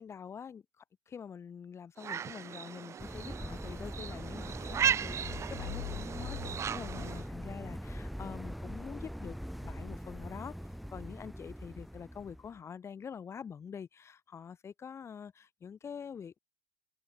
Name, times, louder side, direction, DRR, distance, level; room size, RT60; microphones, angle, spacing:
voice 1, 0.0-10.6 10.9-16.4, left 7 dB, 30° left, 2.9 m, -46 dB
sound 1, 2.0-7.3, right 8 dB, 30° right, 0.9 m, -36 dB
sound 2, 3.0-12.6, equal, ahead, 0.5 m, -42 dB
sound 3, 5.2-7.8, left 16 dB, 80° left, 1.8 m, -46 dB
hypercardioid pair, 100°, 10 cm